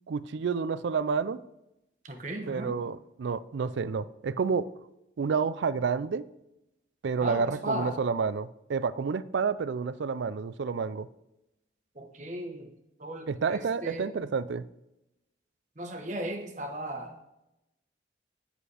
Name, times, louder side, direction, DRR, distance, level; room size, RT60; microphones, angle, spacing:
voice 1, 0.1-1.4 2.4-4.7 5.2-6.3 7.0-11.1 13.3-14.7, right 5 dB, 75° right, 16 dB, 0.4 m, -29 dB
voice 2, 2.0-2.7 7.2-8.0 12.0-12.7 13.0-14.1 15.8-17.2, right 1 dB, 40° right, 4 dB, 1.0 m, -36 dB
9.9 x 5.1 x 4.9 m, 0.89 s
head